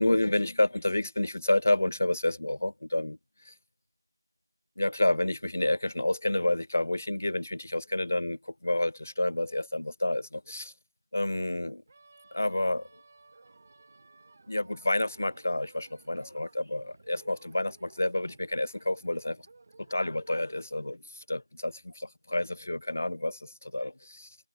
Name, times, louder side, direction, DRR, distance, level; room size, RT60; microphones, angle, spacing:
voice 1, 0.0-3.2 3.4-3.5 4.8-10.7 11.1-11.8 12.3-13.0 14.5-19.5 19.9-24.4, left 1 dB, 30° left, 0.5 m, -29 dB
sound 1, 11.9-20.7, right 3 dB, 20° right, 5.4 m, -58 dB
figure-of-eight pair, 175°, 2 cm